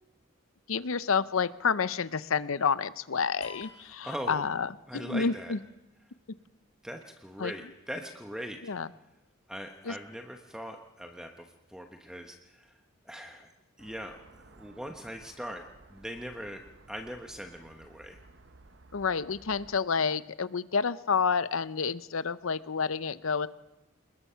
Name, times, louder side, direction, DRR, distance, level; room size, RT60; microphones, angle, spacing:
voice 1, 0.7-5.6 7.4-7.5 8.6-8.9 9.9-10.0 18.9-23.5, left 5 dB, 75° left, 16 dB, 0.7 m, -29 dB
sound 1, 3.4-5.1, left 6 dB, 30° left, 3.0 m, -50 dB
voice 2, 3.7-4.4 4.9-5.5 6.8-8.6 9.5-12.8 13.0-13.5 13.8-15.6 15.9-18.2, equal, 5° right, 4 dB, 1.1 m, -41 dB
sound 2, 13.8-19.8, right 2 dB, 60° right, 1.1 m, -56 dB
28.5 x 20.5 x 5.7 m, 0.98 s
head